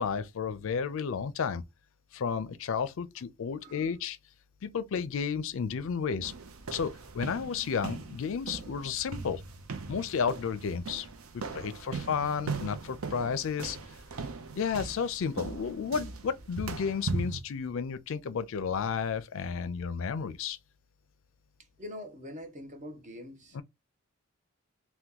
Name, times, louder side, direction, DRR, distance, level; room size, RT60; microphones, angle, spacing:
voice 1, 0.0-1.6 2.1-4.2 4.6-6.3 6.7-9.4 9.9-11.1 11.5-13.8 14.5-20.6 23.5-23.6, left 6 dB, 65° left, 0.4 m, -32 dB
voice 2, 3.6-3.9 14.2-14.4 21.8-23.6, left 1 dB, 35° right, 0.7 m, -44 dB
sound 1, 6.2-17.4, right 4 dB, 75° right, 0.6 m, -39 dB
2.9 x 2.2 x 3.5 m
head